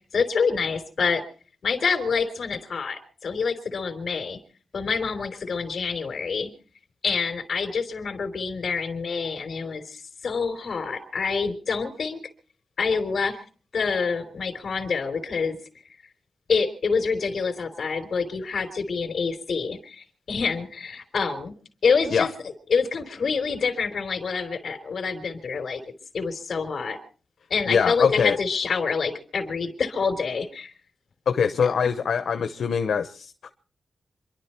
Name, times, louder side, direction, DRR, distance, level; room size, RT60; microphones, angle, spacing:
voice 1, 0.1-1.2 1.6-4.4 4.7-6.5 7.0-12.2 12.8-13.4 13.7-15.6 16.5-21.5 21.8-22.3 22.7-25.8 26.1-27.0 27.5-30.7 31.6-31.9, left 5 dB, 65° left, 3.5 m, -27 dB
voice 2, 27.7-28.4 31.3-33.5, left 6 dB, 85° left, 0.9 m, -23 dB
27.0 x 11.5 x 4.5 m
wide cardioid pair, 115°, 0 cm